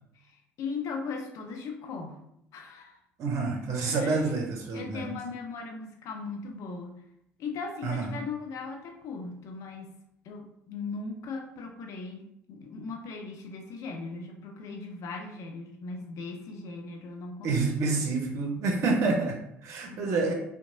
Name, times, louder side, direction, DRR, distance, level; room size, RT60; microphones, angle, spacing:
voice 1, 0.1-2.2 2.5-3.0 3.8-4.2 4.7-7.0 7.4-9.9 10.2-18.0 19.9-20.3, left 4 dB, 55° left, 3 dB, 0.4 m, -38 dB
voice 2, 3.2-5.0 7.8-8.1 17.4-20.3, right 3 dB, 50° right, 2 dB, 0.5 m, -28 dB
2.8 x 2.2 x 2.5 m, 0.75 s
hypercardioid pair, 55°, 6 cm